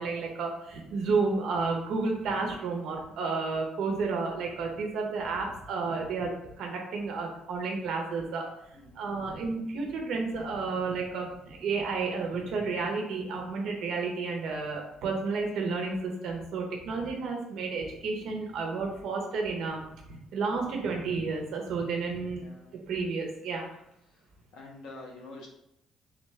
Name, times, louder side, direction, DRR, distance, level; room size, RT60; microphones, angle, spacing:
voice 1, 0.0-8.4 8.9-19.8 20.1-22.5 22.9-23.7, right 4 dB, 65° right, 1 dB, 0.8 m, -31 dB
voice 2, 8.7-9.1 22.3-22.7 24.5-25.5, left 2 dB, 80° left, -1 dB, 1.1 m, -46 dB
3.6 x 3.2 x 3.6 m, 0.81 s
cardioid pair, 175°, 0 cm